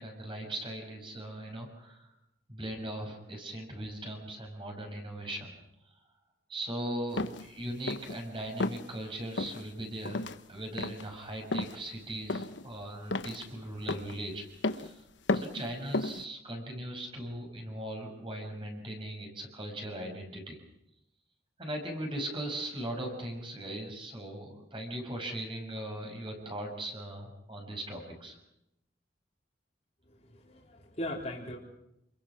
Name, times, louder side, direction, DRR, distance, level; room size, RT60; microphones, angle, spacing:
voice 1, 0.0-2.1 2.5-5.5 6.5-10.2 10.5-14.4 14.7-15.0 15.3-20.6 21.6-28.4, right 1 dB, 25° right, 2 dB, 6.0 m, -39 dB
sound 1, 7.2-7.5 7.9-8.2 8.6-8.8 9.4-9.6 10.0-10.4 10.8-11.1 11.5-11.8 12.3-12.7 13.1-13.4 13.9-14.1 14.6-14.9 15.3-15.6 15.9-16.2, left 2 dB, 75° left, 1.2 m, -32 dB
voice 2, 30.1-31.6, left 1 dB, 35° left, -4 dB, 4.0 m, -39 dB
29.0 x 22.0 x 6.2 m, 0.83 s
head